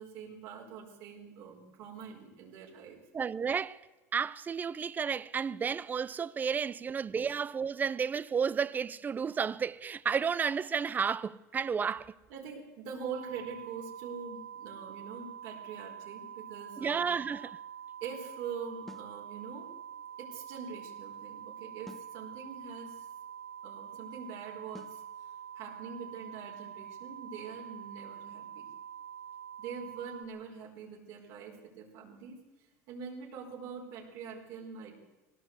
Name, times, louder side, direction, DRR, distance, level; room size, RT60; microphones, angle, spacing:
voice 1, 0.0-3.0 6.5-6.7 7.2-7.3 12.3-17.1 18.0-19.7 20.2-23.1 23.6-28.7 29.6-35.0, right 6 dB, 60° right, 4.6 m, -44 dB
voice 2, 3.1-3.8 4.1-12.1 16.8-17.6, right 6 dB, 20° right, 0.7 m, -32 dB
sound 1, 13.0-30.2, right 9 dB, 75° right, 4.7 m, -46 dB
sound 2, 18.9-19.2 21.9-22.2 24.7-25.0, left 1 dB, 5° left, 1.0 m, -49 dB
20.5 x 17.5 x 8.1 m
supercardioid pair, 120°, 8 cm